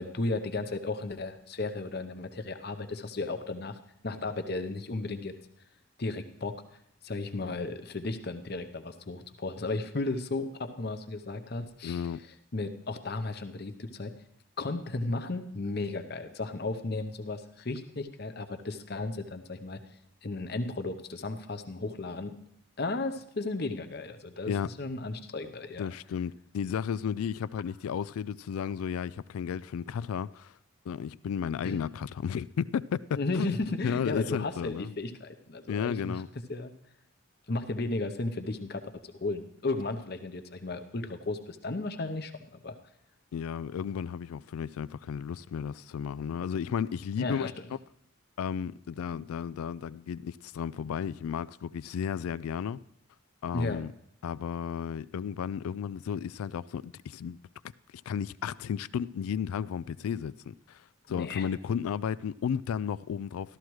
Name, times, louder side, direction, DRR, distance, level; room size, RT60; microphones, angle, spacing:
voice 1, 0.0-3.8 4.0-5.4 6.0-6.5 7.0-12.1 12.5-14.1 14.6-19.8 20.2-22.4 22.8-25.9 31.6-31.8 33.1-36.2 36.5-36.7 37.5-38.8 39.1-42.7 47.2-47.5 53.5-53.8 61.1-61.5, left 2 dB, 45° left, 0.7 m, -34 dB
voice 2, 11.8-12.2 24.5-24.7 25.8-30.5 30.9-33.5 33.8-34.9 35.7-36.3 43.3-47.5 48.4-52.8 53.4-53.9 54.2-57.4 58.1-60.8 61.1-63.6, left 7 dB, 85° left, 0.3 m, -33 dB
13.0 x 13.0 x 3.1 m
head